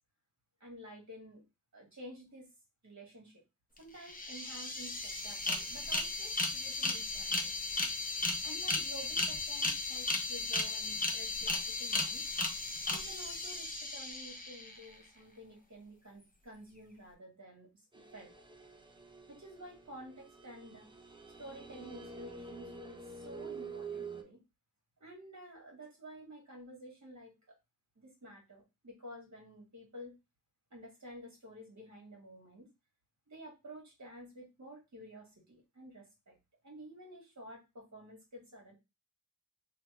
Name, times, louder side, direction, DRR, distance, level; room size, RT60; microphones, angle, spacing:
voice 1, 0.6-1.4 1.7-2.5 2.8-3.4 3.8-7.5 8.4-12.2 12.9-18.3 19.3-20.9 21.4-24.4 25.0-27.3 27.9-30.1 30.7-32.7 33.3-36.3 36.6-38.7, equal, 55° right, 0 dB, 1.7 m, -51 dB
sound 1, 3.8-3.9 4.0-14.9, left 3 dB, 25° left, 0.8 m, -35 dB
sound 2, 17.9-24.2, right 4 dB, 15° right, 0.5 m, -47 dB
2.9 x 2.7 x 3.3 m, 0.25 s
wide cardioid pair, 55°, 33 cm